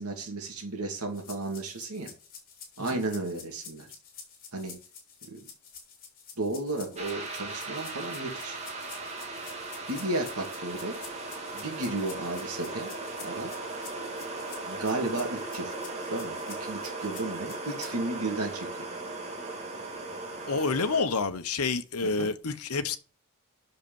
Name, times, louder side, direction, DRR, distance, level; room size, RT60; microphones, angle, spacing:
voice 1, 0.0-2.1 2.8-3.9 4.5-4.7 5.3-5.4 6.4-8.6 9.9-11.0 11.5-12.9 13.2-13.5 14.7-15.7 16.1-18.9 22.0-22.3, right 2 dB, 80° right, 2.4 m, -33 dB
sound 1, 1.1-18.0, left 6 dB, 40° left, 3.4 m, -49 dB
sound 2, 7.0-21.0, right 2 dB, 30° right, 2.2 m, -38 dB
voice 2, 20.5-23.0, left 4 dB, 75° left, 1.0 m, -28 dB
8.0 x 6.6 x 7.1 m
head